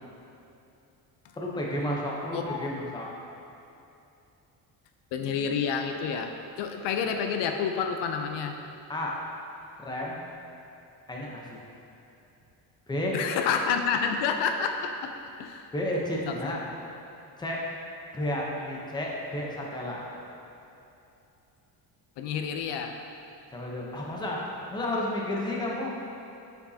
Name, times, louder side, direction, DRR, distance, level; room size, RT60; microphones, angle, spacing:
voice 1, 1.4-3.1 8.9-9.2 9.8-10.2 11.1-11.6 12.9-13.1 15.7-16.7 17.4-17.6 18.1-20.0 23.5-25.9, left 1 dB, 10° left, -3 dB, 0.7 m, -32 dB
voice 2, 2.3-2.7 5.1-8.6 13.1-15.7 16.3-16.4 22.2-23.0, left 6 dB, 85° left, 5 dB, 0.7 m, -29 dB
7.3 x 7.0 x 2.8 m, 2.8 s
cardioid pair, 165°, 41 cm